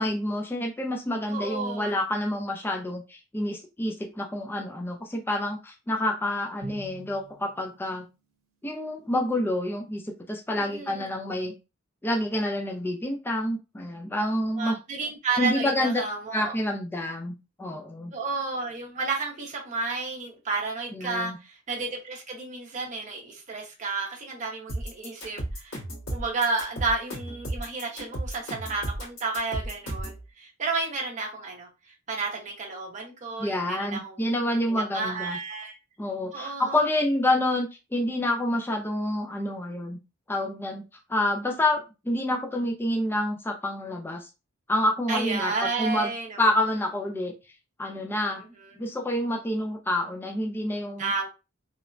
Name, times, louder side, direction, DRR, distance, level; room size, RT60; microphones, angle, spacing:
voice 1, 0.0-8.1 8.6-11.5 12.0-14.8 15.4-16.0 16.3-18.1 20.9-21.4 33.4-35.4 36.0-40.0 40.3-40.8 41.1-44.3 44.7-45.5 45.8-46.1 46.4-47.3 47.8-48.4 48.8-51.1, left 1 dB, 10° left, 2 dB, 0.3 m, -28 dB
voice 2, 1.3-1.9 10.6-11.1 14.6-16.5 18.1-25.8 26.1-34.2 34.7-35.8 36.3-36.8 45.1-46.5 48.6-48.8 51.0-51.3, right 4 dB, 35° right, -1 dB, 0.6 m, -32 dB
Drum, 6.6-8.8, right 1 dB, 75° right, 0.7 m, -46 dB
sound 1, 24.7-30.2, right 1 dB, 85° left, 1.5 m, -33 dB
3.1 x 2.0 x 2.4 m, 0.28 s
head